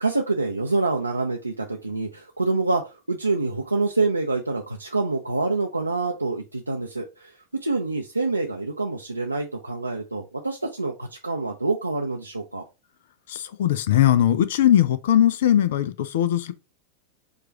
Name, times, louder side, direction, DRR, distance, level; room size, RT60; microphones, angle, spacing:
voice 1, 0.0-12.6, right 3 dB, 85° right, 0.5 m, -26 dB
voice 2, 13.3-16.5, left 11 dB, 55° left, 0.4 m, -20 dB
4.7 x 2.4 x 4.3 m
figure-of-eight pair, 90°, 0 cm